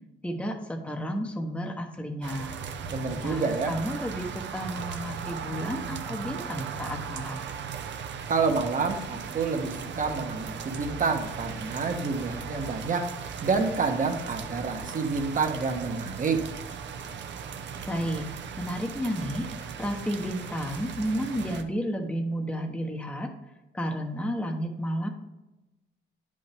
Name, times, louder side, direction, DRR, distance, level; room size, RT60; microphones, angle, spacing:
voice 1, 0.2-2.5 3.2-7.5 17.9-18.2 18.6-19.5 19.8-23.3 23.7-25.1, equal, 5° left, 2 dB, 0.9 m, -32 dB
sound 1, 2.2-21.6, right 7 dB, 65° right, 0.7 m, -38 dB
voice 2, 2.9-3.7 8.3-13.1 13.4-16.5, right 4 dB, 40° right, 5 dB, 1.2 m, -28 dB
9.2 x 5.4 x 3.4 m, 1.0 s
cardioid pair, 90°, 20 cm